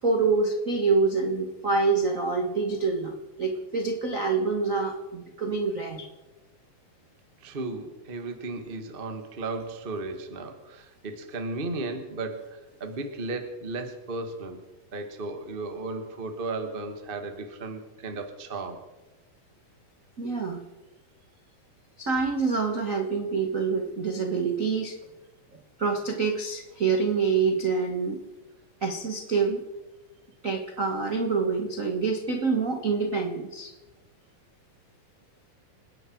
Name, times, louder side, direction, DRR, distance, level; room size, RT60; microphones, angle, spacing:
voice 1, 0.0-6.1 20.2-20.6 22.0-25.0 25.5-28.2 28.8-29.6 30.4-33.7, right 4 dB, 90° right, 3 dB, 0.7 m, -26 dB
voice 2, 7.4-14.6 14.9-18.8, right 3 dB, 30° right, 5 dB, 1.0 m, -35 dB
28.5 x 10.5 x 4.6 m, 1.1 s
omnidirectional pair, 4.0 m